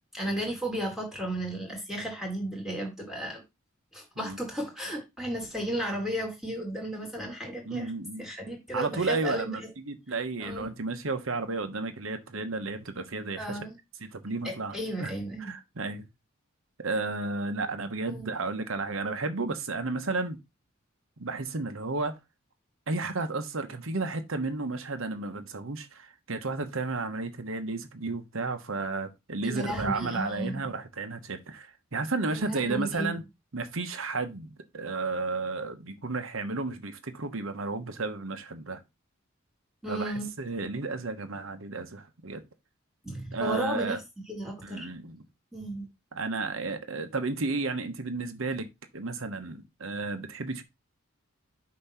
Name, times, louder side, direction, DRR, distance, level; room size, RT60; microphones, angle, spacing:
voice 1, 0.1-3.4 3.9-7.9 8.2-9.7 10.4-10.7 13.4-13.8 14.4-15.5 18.0-18.3 29.4-30.6 32.3-33.2 39.8-40.3 43.0-44.0 44.3-44.9 45.5-45.9, right 1 dB, ahead, 1.8 m, -34 dB
voice 2, 7.6-8.3 8.7-13.6 14.1-15.1 15.4-16.0 16.8-20.4 21.2-22.1 22.9-33.2 33.5-38.8 39.9-42.4 43.3-44.0 44.6-45.2 46.1-48.7 48.9-50.6, right 3 dB, 70° right, 1.1 m, -33 dB
8.5 x 2.9 x 5.7 m
head